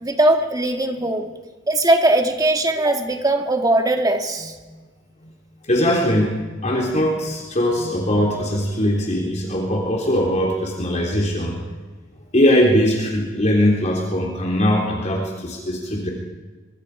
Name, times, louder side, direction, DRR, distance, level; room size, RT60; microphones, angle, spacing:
voice 1, 0.0-1.3 1.7-4.5, right 1 dB, 20° right, 4 dB, 2.1 m, -19 dB
voice 2, 5.6-6.4 6.6-11.6 12.3-16.1, equal, 40° left, -1 dB, 3.6 m, -20 dB
25.0 x 24.0 x 5.0 m, 1.3 s
head